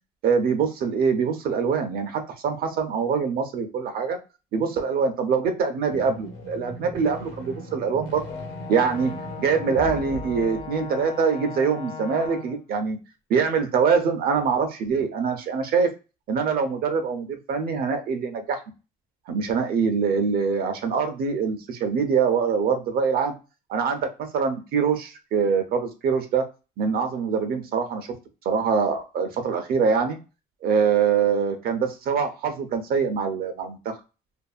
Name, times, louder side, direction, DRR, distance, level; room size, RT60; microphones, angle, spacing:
voice 1, 0.2-4.2 4.5-8.2 8.7-9.1 9.4-13.0 13.3-15.9 16.3-18.6 19.3-23.3 23.7-24.1 24.3-26.5 26.8-28.1 28.5-30.2 30.6-33.9, right 6 dB, 65° right, 7 dB, 0.6 m, -24 dB
sound 1, 5.8-11.4, equal, 80° left, 1.0 m, -39 dB
Brass instrument, 8.2-12.6, left 5 dB, 40° left, 0.5 m, -38 dB
2.6 x 2.4 x 2.3 m, 0.30 s
cardioid pair, 110°, 17 cm